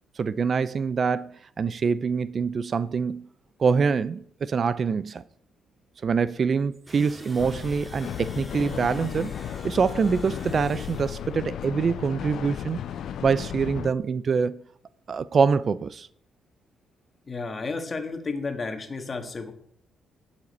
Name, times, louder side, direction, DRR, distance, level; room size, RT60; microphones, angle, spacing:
voice 1, 0.2-3.3 3.6-5.2 6.0-9.3 9.6-12.8 13.2-14.6 15.1-16.1, right 5 dB, 45° right, 0.4 m, -25 dB
sound 1, 6.9-11.3, equal, 10° right, 5.1 m, -46 dB
sound 2, 7.4-13.9, left 9 dB, 70° left, 0.4 m, -35 dB
voice 2, 17.3-19.5, left 4 dB, 35° left, 1.6 m, -32 dB
10.5 x 7.4 x 4.2 m
cardioid pair, 90°, 0 cm